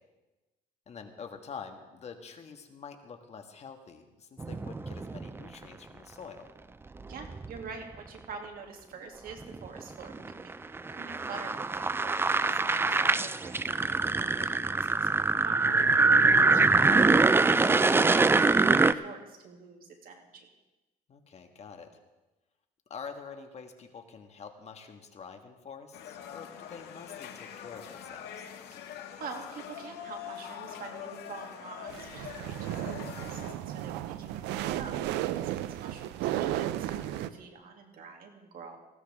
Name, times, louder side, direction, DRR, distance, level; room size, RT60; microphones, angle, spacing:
voice 1, 0.9-6.5 21.1-22.0 22.9-28.5, left 6 dB, 40° left, 5 dB, 1.7 m, -46 dB
sound 1, 4.4-5.4 7.0-7.6 9.4-18.9, right 3 dB, 15° right, 0.4 m, -24 dB
voice 2, 7.0-14.0 14.4-20.5 28.7-28.9 29.2-35.0 35.4-38.8, right 5 dB, 60° right, 2 dB, 2.7 m, -46 dB
sound 2, 25.9-33.5, left 9 dB, 75° left, 1.8 m, -44 dB
sound 3, 31.9-37.3, right 12 dB, 90° right, 0.6 m, -34 dB
19.0 x 16.0 x 3.6 m, 1.1 s
cardioid pair, 110°, 17 cm